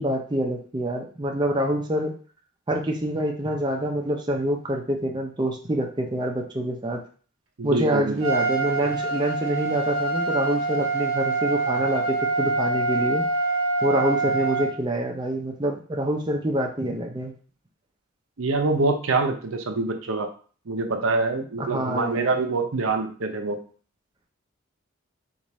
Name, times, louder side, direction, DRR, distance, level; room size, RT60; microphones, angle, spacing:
voice 1, 0.0-2.1 2.7-7.0 7.6-13.2 13.8-17.3 21.6-22.4, right 1 dB, 20° right, 1 dB, 0.5 m, -26 dB
voice 2, 7.6-8.2 18.4-20.3 20.7-23.6, right 3 dB, 70° right, 5 dB, 0.7 m, -25 dB
Trumpet, 8.2-14.7, right 3 dB, 85° right, 1.1 m, -25 dB
4.7 x 2.5 x 4.1 m, 0.41 s
head